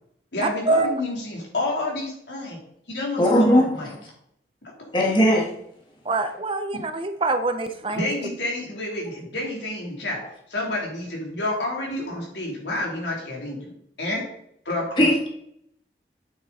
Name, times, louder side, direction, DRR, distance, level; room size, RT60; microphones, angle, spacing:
voice 1, 0.3-2.6 2.9-3.9 8.0-10.2 10.5-13.7 14.0-14.2 14.7-15.1, left 2 dB, 85° left, -2 dB, 3.4 m, -29 dB
voice 2, 3.2-3.9 4.9-5.5 15.0-15.3, equal, 25° left, -2 dB, 1.9 m, -18 dB
voice 3, 6.1-8.1, right 2 dB, 30° right, 8 dB, 0.6 m, -24 dB
8.8 x 7.3 x 4.1 m, 0.72 s
head